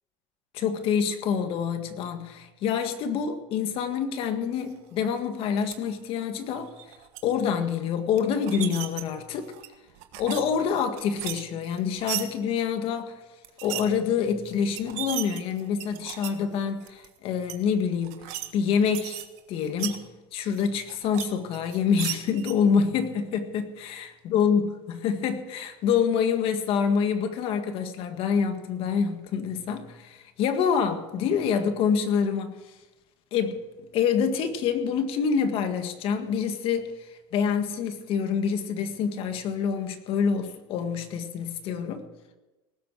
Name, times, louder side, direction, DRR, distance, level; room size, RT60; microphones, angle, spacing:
voice 1, 0.5-6.7 7.2-9.5 10.2-13.1 13.6-18.2 18.5-19.2 19.5-20.0 20.3-32.6 33.3-33.6 33.9-36.9 37.3-42.0, left 6 dB, 50° left, 8 dB, 1.8 m, -26 dB
sound 1, 5.6-5.7 6.6-7.2 8.2-9.0 9.5-10.4 10.7-12.2 13.4-13.8 14.4-14.5 14.7-16.3 16.8-17.1 17.4-17.5 18.0-18.5 18.7-20.0 20.5-21.2 21.5-22.5, right 15 dB, 65° right, 1.5 m, -35 dB
19.0 x 7.8 x 7.4 m, 1.1 s
supercardioid pair, 125°, 12 cm